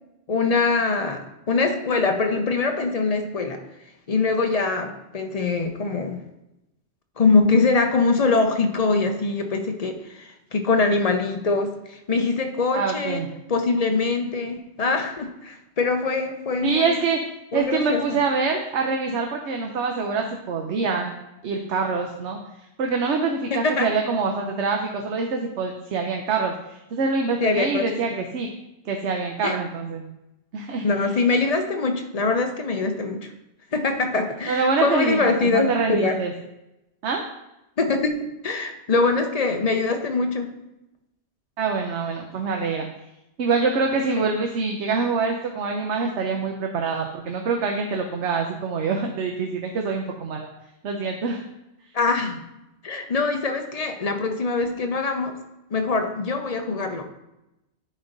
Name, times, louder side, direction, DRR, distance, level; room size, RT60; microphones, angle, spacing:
voice 1, 0.3-3.6 4.1-6.2 7.2-13.2 13.5-17.0 17.5-18.2 23.5-23.9 27.4-27.8 28.1-28.2 29.4-29.5 30.8-33.3 33.7-36.2 37.8-40.5 44.2-44.3 51.9-52.4 52.8-55.4 55.7-57.0, left 3 dB, 40° left, 5 dB, 0.8 m, -23 dB
voice 2, 12.7-13.3 16.6-17.2 17.5-21.1 21.4-22.4 22.8-28.5 28.8-30.1 30.5-31.2 34.5-36.3 37.0-37.2 41.6-42.9 43.4-50.5 50.8-51.4, right 4 dB, 85° right, 2 dB, 1.1 m, -25 dB
10.0 x 4.4 x 3.9 m, 0.91 s
omnidirectional pair, 1.1 m